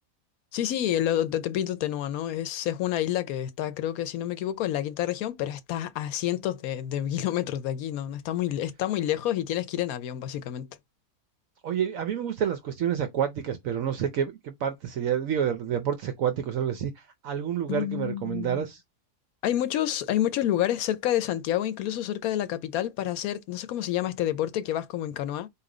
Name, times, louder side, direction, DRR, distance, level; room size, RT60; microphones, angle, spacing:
voice 1, 0.5-10.7 17.7-18.6 19.4-25.5, left 12 dB, 85° left, 1.1 m, -28 dB
voice 2, 11.6-18.8, right 9 dB, 75° right, 1.0 m, -29 dB
4.2 x 2.9 x 3.8 m
omnidirectional pair, 1.5 m